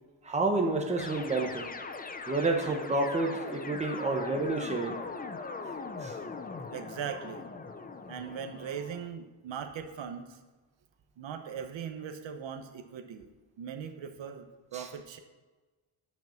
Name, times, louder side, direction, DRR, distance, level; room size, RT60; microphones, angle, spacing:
voice 1, 0.2-1.7 2.3-5.0 6.0-6.1 14.7-14.9, right 2 dB, 15° right, 2 dB, 1.0 m, -29 dB
sound 1, 1.0-9.1, left 4 dB, 20° left, 0.4 m, -40 dB
voice 2, 6.7-7.4 8.1-10.4 11.2-13.3 13.6-15.2, right 7 dB, 65° right, 6 dB, 1.0 m, -40 dB
10.0 x 6.0 x 7.1 m, 1.3 s
wide cardioid pair, 175°, 49 cm